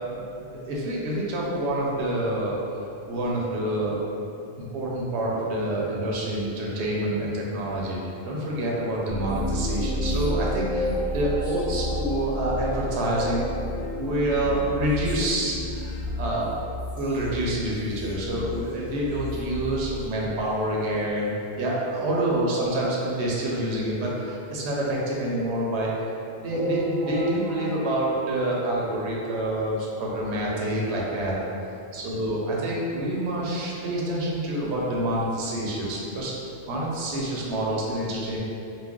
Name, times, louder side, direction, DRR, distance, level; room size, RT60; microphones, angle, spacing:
voice 1, 0.5-2.6 3.1-4.0 4.6-8.0 8.2-13.5 13.8-16.6 17.0-25.9 26.4-31.3 31.9-38.4, right 1 dB, 90° right, -4 dB, 0.9 m, -27 dB
sound 1, 9.1-20.7, left 1 dB, 15° right, 0.4 m, -31 dB
sound 2, 26.5-29.4 29.8-29.9 30.1-30.3 30.6-30.7 31.5-31.6 32.1-32.2, right 1 dB, 55° left, 0.5 m, -34 dB
2.4 x 2.1 x 3.5 m, 2.7 s
omnidirectional pair, 1.1 m